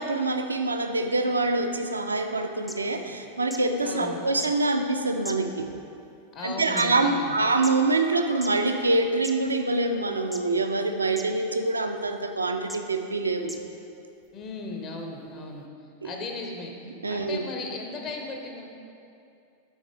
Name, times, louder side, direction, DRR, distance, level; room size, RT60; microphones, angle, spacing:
voice 1, 0.0-5.7 6.4-13.6 16.0-16.1 17.0-17.4, right 2 dB, 80° right, 6 dB, 0.4 m, -25 dB
sound 1, 2.4-2.5 2.7-2.8 3.5-3.6 4.4-4.5 5.3-5.7 6.4-6.9 7.6-7.7 8.3-8.5 9.2-9.3 10.3-10.6 11.2-11.3 12.0-12.1 12.7-12.8 13.5-13.6 14.4-14.5, right 1 dB, ahead, 0.4 m, -38 dB
voice 2, 3.8-4.3 6.3-7.4 14.3-15.7 16.0-16.7 17.1-18.6, left 3 dB, 35° left, 2 dB, 0.7 m, -36 dB
9.3 x 3.8 x 3.3 m, 2.6 s
figure-of-eight pair, 90°, 0 cm